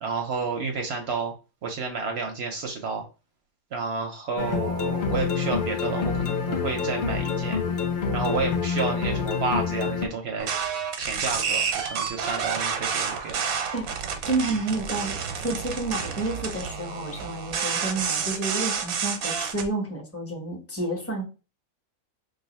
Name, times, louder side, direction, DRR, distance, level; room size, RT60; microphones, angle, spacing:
voice 1, 0.0-1.3 1.6-3.0 3.7-7.6 8.1-10.5 11.0-13.4, right 4 dB, 65° right, 3 dB, 0.7 m, -30 dB
sound 1, 4.4-10.1, left 6 dB, 80° left, 0.4 m, -27 dB
sound 2, 10.4-19.7, right 6 dB, 85° right, 1.1 m, -29 dB
voice 2, 13.7-21.2, right 2 dB, 15° left, 0 dB, 0.6 m, -30 dB
2.5 x 2.4 x 4.0 m, 0.32 s
omnidirectional pair, 1.5 m